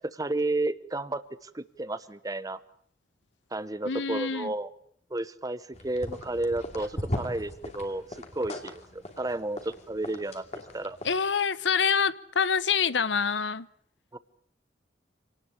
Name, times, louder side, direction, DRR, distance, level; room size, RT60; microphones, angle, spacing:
voice 1, 0.0-2.6 3.5-4.7 5.1-8.0 8.3-10.4 10.7-11.0 14.1-14.2, right 2 dB, 20° right, 1.0 m, -32 dB
voice 2, 3.8-4.5 11.0-13.7, left 6 dB, 85° left, 0.9 m, -26 dB
sound 1, 5.7-11.2, left 1 dB, 40° left, 2.7 m, -39 dB
26.5 x 19.0 x 8.4 m
head